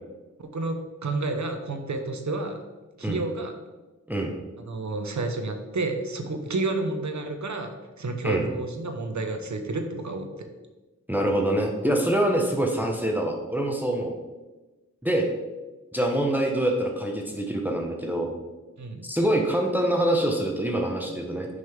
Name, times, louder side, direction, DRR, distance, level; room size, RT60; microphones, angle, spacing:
voice 1, 0.4-2.6 3.0-3.5 4.7-7.7 8.0-10.5 18.8-19.1, right 2 dB, 65° right, 6 dB, 0.9 m, -30 dB
voice 2, 11.1-14.1 15.0-15.3 15.9-18.3 19.0-21.5, right 1 dB, 5° right, 1 dB, 0.9 m, -25 dB
6.5 x 5.2 x 3.6 m, 1.2 s
cardioid pair, 45°, 31 cm